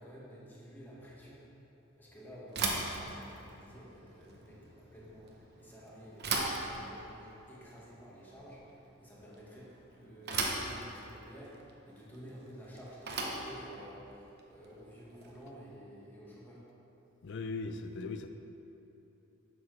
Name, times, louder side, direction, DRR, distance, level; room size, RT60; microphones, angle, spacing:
voice 1, 0.0-1.5 2.0-16.6, equal, 10° left, -7 dB, 1.5 m, -51 dB
Bicycle / Thump thud, 2.5-15.6, right 3 dB, 55° right, 0.9 m, -39 dB
voice 2, 17.2-18.3, left 3 dB, 60° left, 8 dB, 0.5 m, -38 dB
8.2 x 7.1 x 3.3 m, 3.0 s
head